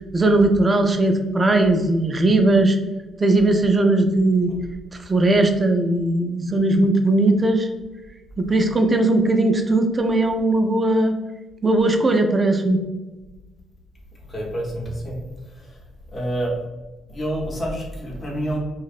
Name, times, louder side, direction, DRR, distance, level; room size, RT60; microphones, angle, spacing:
voice 1, 0.1-2.8 3.2-4.5 5.1-7.7 8.4-11.1 11.6-12.8, right 2 dB, 30° right, 5 dB, 0.3 m, -18 dB
voice 2, 14.3-15.2 16.1-16.5 17.1-18.6, right 1 dB, 35° left, -2 dB, 0.7 m, -27 dB
2.6 x 2.0 x 2.3 m, 1.1 s
cardioid pair, 90°, 0 cm